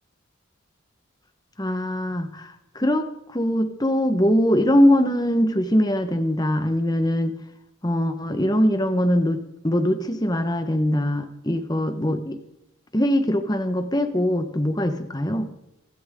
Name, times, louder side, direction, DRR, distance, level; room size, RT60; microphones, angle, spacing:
voice 1, 1.6-7.3 7.8-12.4 12.9-15.5, equal, 20° left, 8 dB, 1.3 m, -22 dB
27.0 x 12.5 x 3.8 m, 0.82 s
head